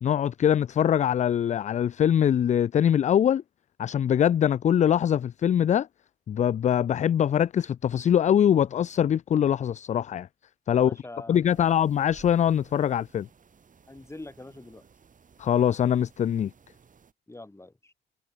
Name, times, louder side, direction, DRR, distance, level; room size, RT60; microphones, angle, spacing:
voice 1, 0.0-3.4 3.8-5.9 6.3-10.3 10.7-10.9 11.3-13.3 15.4-16.5, left 9 dB, 40° left, 0.4 m, -23 dB
voice 2, 10.7-11.7 13.9-14.8 17.3-17.9, left 2 dB, 15° left, 3.9 m, -44 dB
sound 1, 11.5-17.1, right 6 dB, 40° right, 4.9 m, -57 dB
cardioid pair, 90°, 20 cm